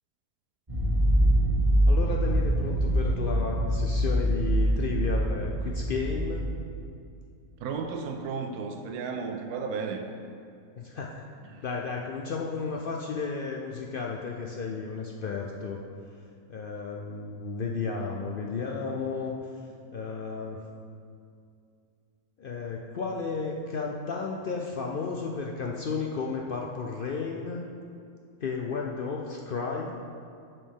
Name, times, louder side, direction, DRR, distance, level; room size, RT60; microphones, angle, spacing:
sound 1, 0.7-6.4, right 1 dB, 25° right, 1.9 m, -24 dB
voice 1, 1.9-6.6 10.8-11.2 11.6-15.8 16.5-19.4 19.9-20.7 22.4-27.6 28.4-29.9, left 4 dB, 75° left, 0 dB, 0.5 m, -33 dB
voice 2, 7.6-10.1 11.5-11.6, right 5 dB, 85° right, 4 dB, 1.1 m, -33 dB
10.5 x 5.6 x 3.6 m, 2.4 s
omnidirectional pair, 1.6 m